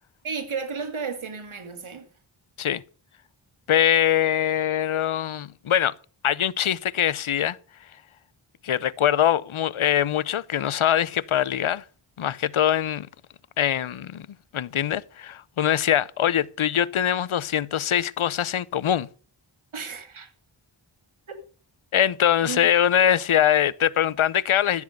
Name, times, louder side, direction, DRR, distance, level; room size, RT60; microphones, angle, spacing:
voice 1, 0.2-2.1 19.7-20.3 22.4-22.6, right 5 dB, 80° right, 2.4 m, -33 dB
voice 2, 3.7-5.9 6.2-7.6 8.6-11.8 12.2-13.1 13.6-14.3 14.5-19.1 21.9-24.8, left 10 dB, 80° left, 0.7 m, -23 dB
14.5 x 7.5 x 6.6 m
cardioid pair, 45°, 48 cm